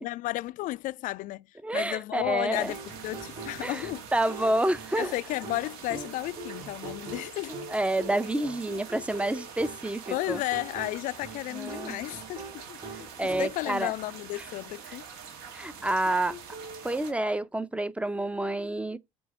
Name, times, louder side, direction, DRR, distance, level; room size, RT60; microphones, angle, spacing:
voice 1, 0.0-4.0 5.0-7.6 10.1-15.0, left 17 dB, 50° left, 0.4 m, -33 dB
voice 2, 1.6-2.7 3.6-3.8 4.1-5.1 7.7-10.4 11.6-12.0 13.2-13.9 15.5-16.4 16.8-19.0, right 1 dB, 5° right, 0.6 m, -28 dB
sound 1, 2.2-13.8 16.1-16.9, right 3 dB, 35° right, 3.5 m, -43 dB
sound 2, 2.6-17.1, right 6 dB, 65° right, 1.5 m, -45 dB
6.1 x 4.1 x 6.1 m
hypercardioid pair, 65°, 17 cm